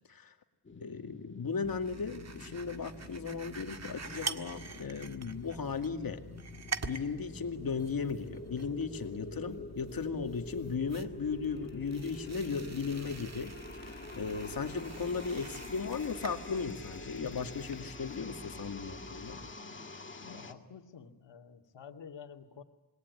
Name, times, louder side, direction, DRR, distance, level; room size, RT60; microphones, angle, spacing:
sound 1, 0.6-20.5, left 3 dB, 25° left, 2.1 m, -47 dB
voice 1, 0.8-6.2 6.8-19.4, left 5 dB, 55° left, 6 dB, 2.3 m, -36 dB
sound 2, 1.6-19.5, right 5 dB, 40° right, 1.8 m, -46 dB
voice 2, 20.2-22.6, left 7 dB, 80° left, 5 dB, 2.4 m, -50 dB
27.0 x 22.0 x 9.6 m, 1.1 s
wide cardioid pair, 120°, 42 cm